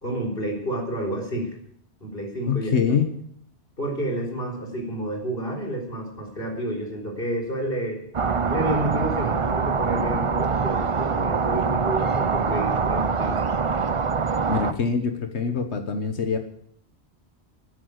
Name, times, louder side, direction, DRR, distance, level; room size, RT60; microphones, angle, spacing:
voice 1, 0.0-1.5 2.0-2.7 3.8-8.0 8.5-13.4, right 1 dB, 60° left, 0 dB, 4.1 m, -30 dB
voice 2, 2.5-3.1 14.5-16.4, left 6 dB, 90° left, 7 dB, 1.6 m, -24 dB
sound 1, 8.1-14.7, right 5 dB, 35° right, 0.6 m, -24 dB
13.0 x 10.5 x 8.1 m, 0.68 s
omnidirectional pair, 1.1 m